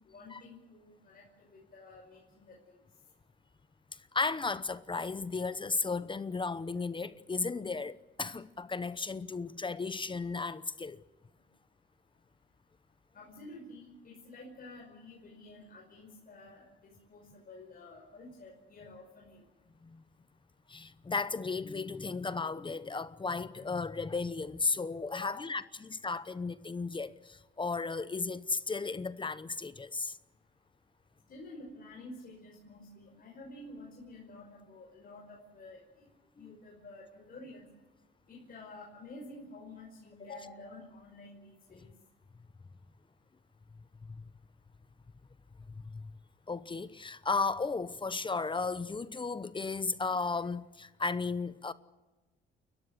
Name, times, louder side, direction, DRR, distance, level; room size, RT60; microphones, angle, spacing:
voice 1, 0.0-2.8 13.1-19.4 25.1-25.4 27.9-28.0 31.3-36.1 36.4-37.7 38.3-41.9, left 2 dB, 50° left, 5.6 m, -50 dB
voice 2, 3.9-11.0 19.8-20.0 20.7-30.2 36.4-36.5 44.0-44.3 45.8-46.1 46.5-51.7, left 4 dB, 25° left, 0.9 m, -35 dB
30.0 x 14.5 x 8.2 m
cardioid pair, 90°, 20 cm